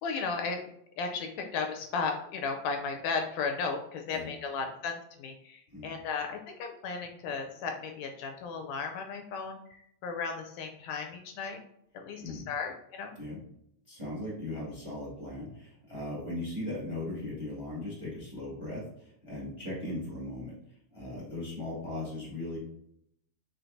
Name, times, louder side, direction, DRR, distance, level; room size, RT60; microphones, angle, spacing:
voice 1, 0.0-0.6 1.0-11.6 11.9-13.2, left 5 dB, 80° left, 4 dB, 1.8 m, -35 dB
voice 2, 12.2-12.5 13.1-13.4 13.9-20.6 20.9-22.6, left 1 dB, 15° right, -5 dB, 1.2 m, -38 dB
4.4 x 4.1 x 2.7 m, 0.73 s
omnidirectional pair, 3.4 m